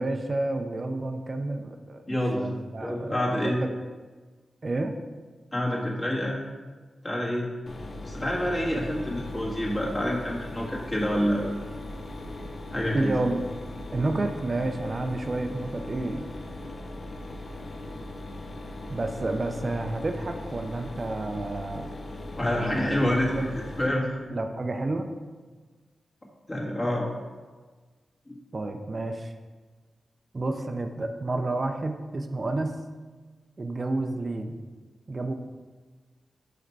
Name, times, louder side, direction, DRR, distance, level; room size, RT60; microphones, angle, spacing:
voice 1, 0.0-2.0 2.4-3.7 4.6-4.9 12.9-13.4 13.9-16.3 18.9-21.9 22.5-23.5 24.3-25.1 28.5-29.3 30.3-32.8 33.6-34.6 35.1-35.3, right 2 dB, 45° right, 5 dB, 0.5 m, -30 dB
voice 2, 2.1-2.4 2.8-3.5 5.5-6.4 7.0-7.5 8.1-11.5 12.7-13.1 22.4-23.3 23.8-24.1 26.5-27.1 28.3-28.4, left 1 dB, 35° left, -4 dB, 1.7 m, -27 dB
Mechanisms, 7.7-23.9, left 2 dB, 55° left, 0.7 m, -39 dB
4.9 x 4.3 x 4.6 m, 1.4 s
cardioid pair, 45°, 0 cm